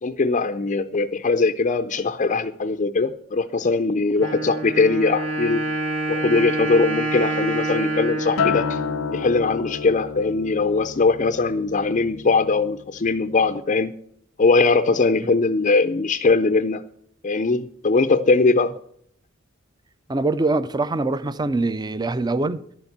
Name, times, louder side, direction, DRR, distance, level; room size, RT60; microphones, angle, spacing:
voice 1, 0.0-5.6 6.1-8.8 9.1-13.9 14.4-16.8 17.2-18.7, left 3 dB, 35° left, 0.5 m, -21 dB
Wind instrument woodwind instrument, 4.2-9.9, right 2 dB, 70° right, 2.0 m, -27 dB
Acoustic guitar, 8.4-12.8 13.2-13.6, left 6 dB, 80° left, 0.6 m, -30 dB
voice 2, 20.1-22.6, right 2 dB, 20° right, 0.5 m, -23 dB
11.0 x 7.1 x 8.0 m
head